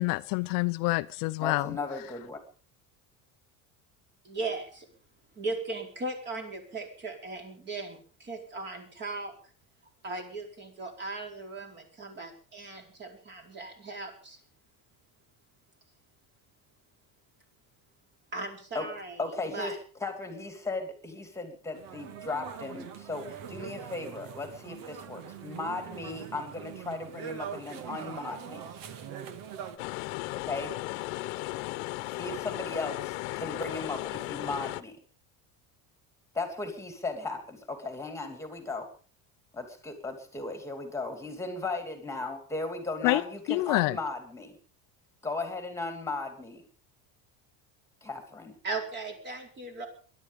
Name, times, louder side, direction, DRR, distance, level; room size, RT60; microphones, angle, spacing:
voice 1, 0.0-1.8 43.0-43.2 43.5-44.0, left 22 dB, 55° left, 0.7 m, -27 dB
voice 2, 1.4-2.4 18.7-18.9 19.2-28.7 30.4-30.7 32.1-34.9 36.3-38.9 39.5-44.6 45.2-46.6 48.0-48.6, left 3 dB, 5° left, 2.8 m, -36 dB
voice 3, 4.2-4.9 5.4-9.3 10.0-14.4 18.3-19.2 19.5-19.8 48.6-49.9, right 3 dB, 25° right, 4.7 m, -37 dB
sound 1, 21.7-29.8, right 8 dB, 55° right, 2.0 m, -42 dB
sound 2, 29.8-34.8, left 20 dB, 85° left, 1.2 m, -36 dB
22.5 x 11.5 x 5.3 m
cardioid pair, 175°, 39 cm